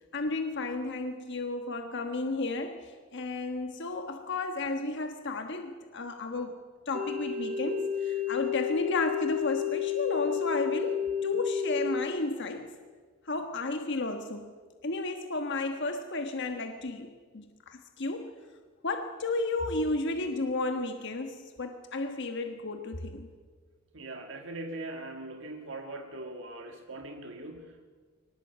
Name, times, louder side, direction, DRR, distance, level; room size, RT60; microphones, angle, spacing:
voice 1, 0.1-6.6 6.8-12.7 13.2-14.5 14.8-18.3 18.8-23.3, left 2 dB, 60° left, 6 dB, 1.3 m, -33 dB
sound 1, 6.9-12.1, left 8 dB, 30° right, 1.4 m, -31 dB
voice 2, 23.9-27.9, right 2 dB, 65° right, 5 dB, 1.7 m, -41 dB
22.5 x 19.0 x 8.1 m, 1.5 s
head